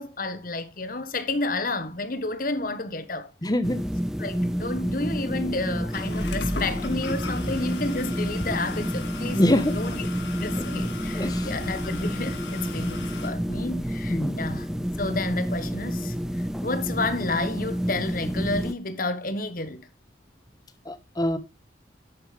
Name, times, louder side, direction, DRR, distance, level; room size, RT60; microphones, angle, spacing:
voice 1, 0.0-3.3 4.2-10.1 10.4-14.7 15.0-19.9, left 2 dB, 50° left, 1.3 m, -31 dB
voice 2, 3.4-3.8 9.3-9.8 10.6-10.7 11.1-11.5 14.1-14.4 20.9-21.4, left 1 dB, 20° left, 1.0 m, -24 dB
sound 1, 3.6-18.7, equal, 5° right, 0.4 m, -29 dB
sound 2, 5.9-13.3, left 2 dB, 70° left, 2.1 m, -36 dB
10.0 x 8.7 x 3.3 m
head